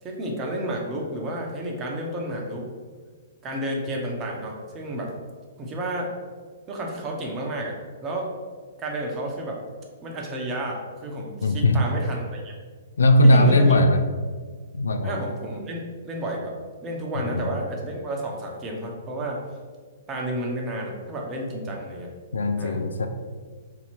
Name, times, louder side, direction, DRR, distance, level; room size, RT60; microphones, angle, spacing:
voice 1, 0.0-2.6 3.4-5.1 5.6-6.1 6.7-8.3 8.8-9.6 10.0-12.5 13.2-13.7 15.0-16.5 16.8-19.4 20.1-22.1 22.6-22.8, right 1 dB, 25° right, 0 dB, 0.9 m, -31 dB
voice 2, 11.4-11.8 13.0-14.0 14.7-15.2 17.1-17.6 22.3-23.1, left 1 dB, 75° left, 7 dB, 0.4 m, -19 dB
3.8 x 2.9 x 4.4 m, 1.5 s
figure-of-eight pair, 120°, 0 cm